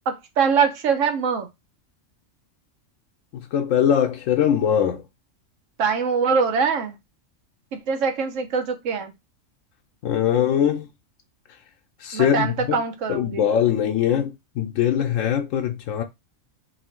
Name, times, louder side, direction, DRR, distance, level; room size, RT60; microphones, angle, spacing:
voice 1, 0.1-1.5 5.8-7.0 7.7-9.1 12.1-13.5, right 5 dB, 80° right, 1.2 m, -23 dB
voice 2, 3.5-5.0 10.0-10.9 12.0-12.8 13.1-16.0, left 9 dB, 80° left, 1.0 m, -21 dB
3.0 x 2.7 x 4.3 m
omnidirectional pair, 1.3 m